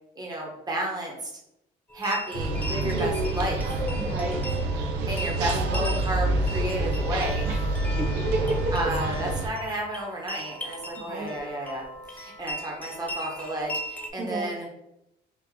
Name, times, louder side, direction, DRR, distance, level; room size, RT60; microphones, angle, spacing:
voice 1, 0.2-1.3 1.9-3.7 5.1-7.5 8.7-11.8 12.1-14.7, right 1 dB, 25° right, -1 dB, 1.1 m, -32 dB
sound 1, 1.9-14.1, equal, 10° left, 0.5 m, -39 dB
sound 2, 2.3-9.5, right 2 dB, 80° right, 0.6 m, -27 dB
voice 2, 4.0-4.4 7.5-7.7 8.0-8.9 11.1-11.3 14.2-14.5, right 2 dB, 50° right, -6 dB, 0.9 m, -31 dB
3.1 x 2.5 x 3.8 m, 0.84 s
cardioid pair, 110°, 17 cm